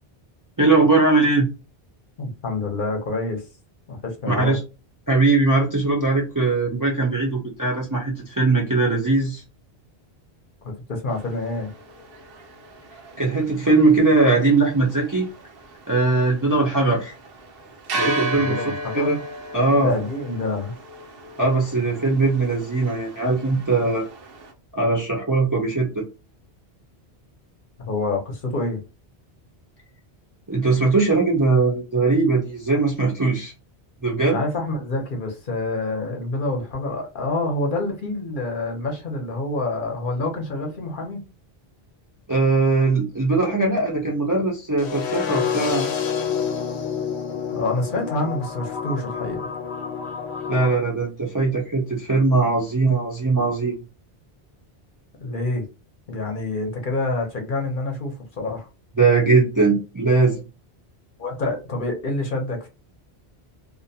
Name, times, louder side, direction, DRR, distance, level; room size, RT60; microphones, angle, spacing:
voice 1, 0.6-1.5 4.3-4.6 5.1-9.4 13.2-15.3 15.9-17.1 17.9-19.2 19.5-19.9 21.4-24.0 24.7-26.0 30.5-33.5 34.0-34.4 42.3-45.8 50.5-53.8 59.0-60.4, right 3 dB, 25° right, 0.4 m, -20 dB
voice 2, 2.2-3.4 3.9-4.6 10.6-11.7 18.3-19.2 19.8-20.7 27.8-28.8 34.3-41.2 47.5-49.5 55.2-55.7 56.1-58.7 61.2-62.7, left 2 dB, 55° left, 0.9 m, -27 dB
sound 1, 11.1-24.5, right 1 dB, 65° right, 0.8 m, -36 dB
sound 2, 44.8-50.8, left 7 dB, 85° left, 0.9 m, -28 dB
2.5 x 2.1 x 2.7 m
omnidirectional pair, 1.1 m